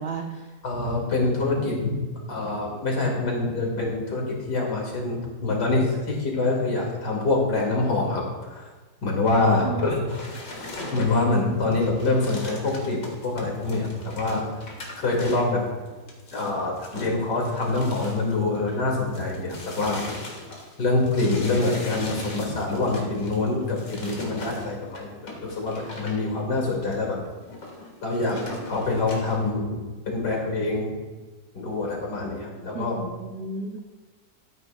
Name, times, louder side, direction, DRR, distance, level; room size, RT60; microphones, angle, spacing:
voice 1, 0.0-0.6 9.6-9.9 32.7-33.8, right 4 dB, 70° right, 4 dB, 0.5 m, -33 dB
voice 2, 0.6-1.9 2.3-8.2 8.5-8.6 9.0-10.0 10.9-14.4 15.0-15.6 16.3-20.0 20.8-27.2 28.0-28.4 28.7-29.8 30.0-30.9 31.5-33.0, left 2 dB, 75° left, -1 dB, 2.8 m, -25 dB
sound 1, 10.1-18.8 19.1-26.2 26.7-26.9 27.3-29.5, left 2 dB, 55° left, 2.1 m, -39 dB
14.0 x 8.9 x 2.3 m, 1.3 s
omnidirectional pair, 1.8 m